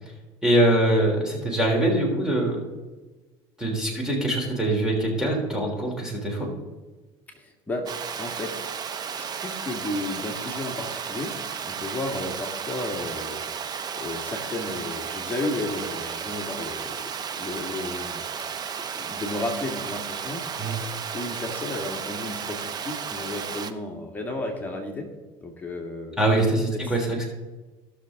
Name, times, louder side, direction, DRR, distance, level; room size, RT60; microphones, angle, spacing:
voice 1, 0.4-2.6 3.6-6.5 20.6-20.7 26.2-27.3, right 1 dB, 5° right, -1 dB, 3.3 m, -23 dB
voice 2, 7.3-8.7 9.2-13.4 14.0-17.0 17.3-18.2 18.9-20.8 21.1-25.1 25.4-26.2 26.7-26.9, left 2 dB, 15° left, 1 dB, 2.0 m, -33 dB
Water, 7.9-23.7, right 7 dB, 35° right, 0.8 m, -33 dB
17.5 x 6.5 x 3.7 m, 1.2 s
supercardioid pair, 110°, 11 cm